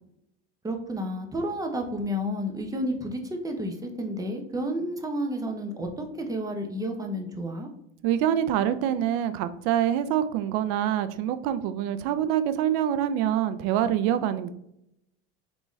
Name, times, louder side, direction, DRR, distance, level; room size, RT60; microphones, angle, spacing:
voice 1, 0.6-7.7, equal, 10° right, 3 dB, 0.7 m, -31 dB
voice 2, 8.0-14.5, right 10 dB, 60° right, 12 dB, 0.5 m, -25 dB
3.8 x 3.6 x 3.1 m, 0.79 s
supercardioid pair, 110°, 35 cm